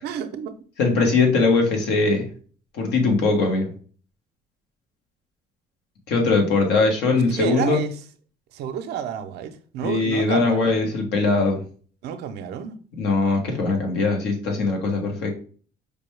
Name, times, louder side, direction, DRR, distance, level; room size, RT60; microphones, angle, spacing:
voice 1, 0.0-0.5 1.2-1.3 7.1-7.9 8.5-10.8 12.0-12.8, right 8 dB, 80° right, 0.5 m, -30 dB
voice 2, 0.8-2.3 2.7-3.7 6.1-7.8 9.8-11.6 13.0-15.3, left 3 dB, 80° left, 1.2 m, -21 dB
4.9 x 2.2 x 3.2 m
cardioid pair, 110°, 17 cm